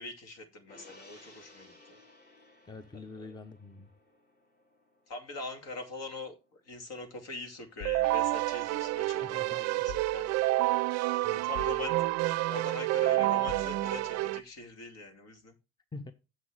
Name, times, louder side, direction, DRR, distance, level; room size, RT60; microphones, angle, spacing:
voice 1, 0.0-2.0 2.9-3.4 5.1-10.4 11.3-11.9 12.5-15.5, left 3 dB, 55° left, 2.6 m, -43 dB
Gong, 0.7-7.3 7.6-7.8, left 2 dB, 30° left, 3.5 m, -58 dB
voice 2, 2.6-3.9 9.2-9.9 11.2-11.5 15.9-16.1, left 3 dB, 15° left, 0.9 m, -45 dB
sound 1, 7.8-9.2 9.9-10.7 11.5-12.4 13.5-14.3, left 8 dB, 85° left, 1.0 m, -48 dB
Keyboard (musical), 7.8-14.4, right 18 dB, 60° right, 0.5 m, -29 dB
7.5 x 6.1 x 4.7 m
hypercardioid pair, 60°, 30 cm